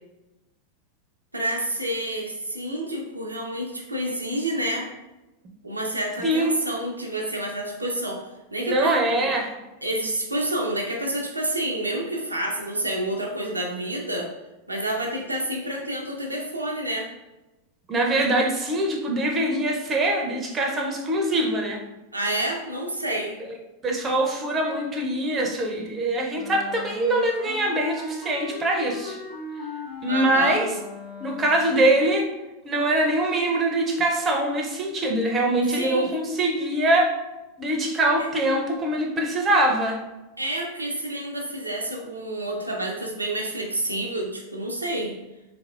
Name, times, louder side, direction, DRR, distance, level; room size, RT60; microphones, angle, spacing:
voice 1, 1.3-4.9 5.6-8.2 8.5-9.3 9.8-14.3 14.7-17.1 22.1-23.4 30.1-30.6 35.7-36.3 38.2-38.3 40.4-45.1, right 1 dB, 85° right, 0 dB, 0.5 m, -29 dB
voice 2, 6.2-6.6 8.6-9.5 17.9-21.8 23.8-29.2 30.0-30.7 31.2-32.3 32.6-37.1 37.6-40.0, right 1 dB, 20° right, 1 dB, 0.6 m, -23 dB
Wind instrument woodwind instrument, 26.3-31.9, left 4 dB, 65° left, 0.9 m, -38 dB
3.4 x 3.3 x 2.3 m, 1.0 s
figure-of-eight pair, 90°, 0 cm